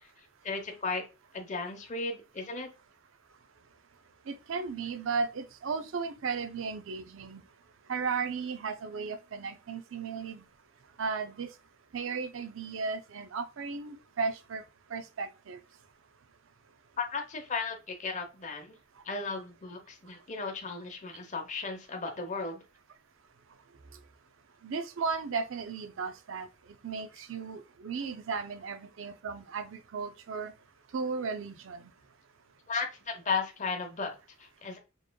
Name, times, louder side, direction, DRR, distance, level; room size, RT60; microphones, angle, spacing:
voice 1, 0.4-1.0 1.3-2.7 17.0-18.8 19.1-22.6 32.7-34.8, left 4 dB, 40° left, 0.8 m, -35 dB
voice 2, 4.3-7.4 7.9-10.4 11.0-11.5 11.9-14.6 14.9-15.6 24.6-26.5 26.8-30.5 30.9-31.9, right 5 dB, 70° right, 0.5 m, -35 dB
4.5 x 3.1 x 2.2 m
head